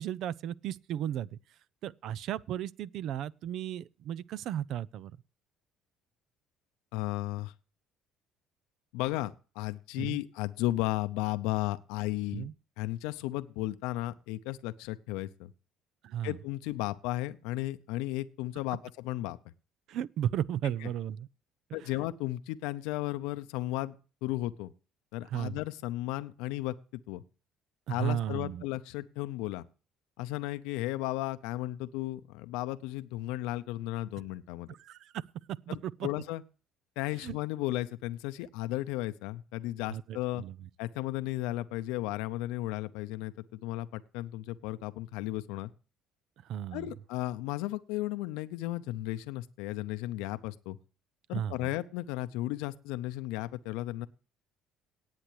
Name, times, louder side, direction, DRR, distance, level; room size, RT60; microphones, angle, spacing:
voice 1, 0.0-1.4 1.8-5.1 10.0-10.2 12.3-12.5 16.0-16.4 19.9-21.3 21.8-21.9 25.3-25.6 27.9-28.6 34.7-36.1 37.2-37.4 39.9-40.7 46.4-46.9 51.3-51.6, right 10 dB, 65° right, 0.5 m, -35 dB
voice 2, 6.9-7.5 8.9-12.5 12.8-15.5 16.2-19.4 20.8-20.9 21.7-23.9 24.2-24.7 25.1-26.8 27.1-27.2 27.9-29.6 30.2-34.7 35.7-36.4 37.0-40.4 40.8-43.3 43.6-45.7 46.7-50.8 51.3-54.1, left 17 dB, 75° left, 0.6 m, -34 dB
18.5 x 8.2 x 3.1 m
hypercardioid pair, 60°, 0 cm